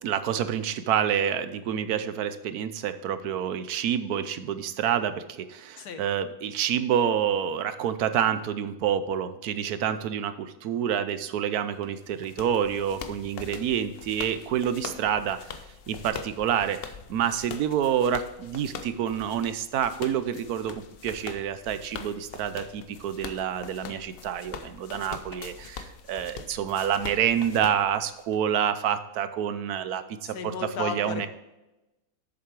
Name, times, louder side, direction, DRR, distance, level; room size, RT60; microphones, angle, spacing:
voice 1, 0.0-15.6 15.9-30.3 30.8-31.3, right 9 dB, 80° right, 11 dB, 1.2 m, -28 dB
sound 1, 11.8-28.4, left 6 dB, 55° left, 0.7 m, -43 dB
voice 2, 30.2-31.3, left 7 dB, 85° left, 8 dB, 1.5 m, -34 dB
7.8 x 7.1 x 4.6 m, 0.99 s
omnidirectional pair, 1.6 m